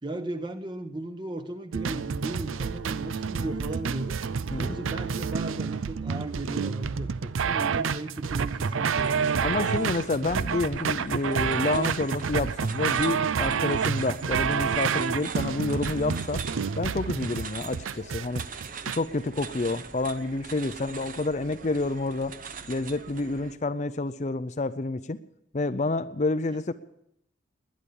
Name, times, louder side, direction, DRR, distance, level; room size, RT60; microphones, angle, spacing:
voice 1, 0.0-4.2 4.6-9.5 26.5-26.6, right 2 dB, 25° right, 8 dB, 1.1 m, -36 dB
sound 1, 1.7-19.0, right 6 dB, 85° right, 0.5 m, -29 dB
sound 2, 8.5-23.5, right 5 dB, 40° right, 0.8 m, -42 dB
voice 2, 9.4-16.4 16.8-18.5 18.9-22.4 22.7-25.2 25.5-26.7, left 2 dB, 35° left, 11 dB, 0.5 m, -29 dB
19.5 x 10.5 x 7.0 m, 0.78 s
head